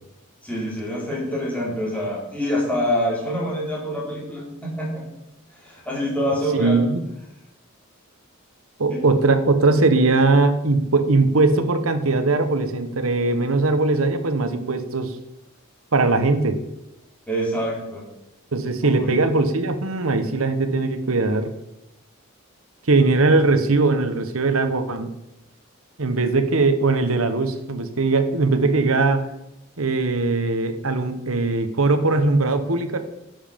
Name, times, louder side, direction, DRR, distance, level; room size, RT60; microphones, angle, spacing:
voice 1, 0.4-5.1 5.5-6.8 8.9-9.0 17.3-18.0 18.8-19.2, equal, 5° left, -5 dB, 4.1 m, -26 dB
voice 2, 6.5-7.0 8.8-15.1 15.9-16.6 18.5-21.5 22.9-25.1 26.0-29.2 29.8-33.0, right 3 dB, 80° right, 9 dB, 1.1 m, -20 dB
11.0 x 7.3 x 5.2 m, 0.93 s
head